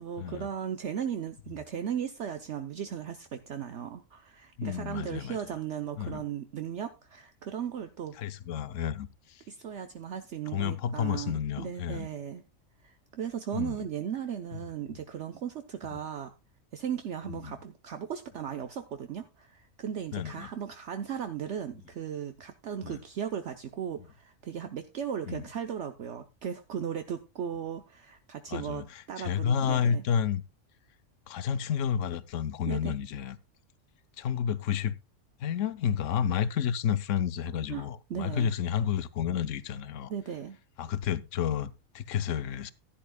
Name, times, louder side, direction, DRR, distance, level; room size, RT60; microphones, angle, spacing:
voice 1, 0.0-8.1 9.5-12.4 12.8-16.3 16.7-30.0 32.7-33.0 37.7-38.5 40.1-40.6, right 8 dB, 65° right, 1.1 m, -37 dB
voice 2, 4.6-5.4 6.0-6.2 8.2-9.4 10.5-12.1 13.5-13.8 15.9-16.0 17.3-17.5 20.1-20.5 22.8-23.0 25.3-25.4 28.5-28.9 29.2-30.4 31.3-33.4 34.2-34.9 35.4-40.1 40.8-42.7, left 8 dB, 75° left, 1.0 m, -30 dB
15.5 x 10.5 x 2.3 m
omnidirectional pair, 1.3 m